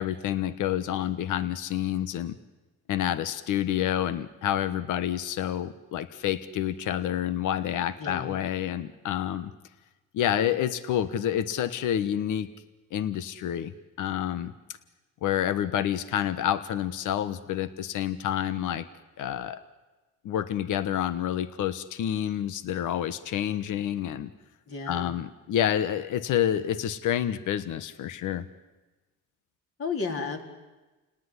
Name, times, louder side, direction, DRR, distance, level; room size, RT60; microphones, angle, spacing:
voice 1, 0.0-2.3 2.9-9.5 10.1-12.5 12.9-13.7 14.0-14.5 15.2-18.9 19.2-19.6 20.2-24.3 24.9-28.4, left 10 dB, 85° left, 13 dB, 1.3 m, -28 dB
voice 2, 8.0-8.3 24.7-25.1 29.8-30.4, left 4 dB, 45° left, 3 dB, 4.4 m, -32 dB
29.5 x 19.0 x 9.9 m, 1.2 s
cardioid pair, 90°, 30 cm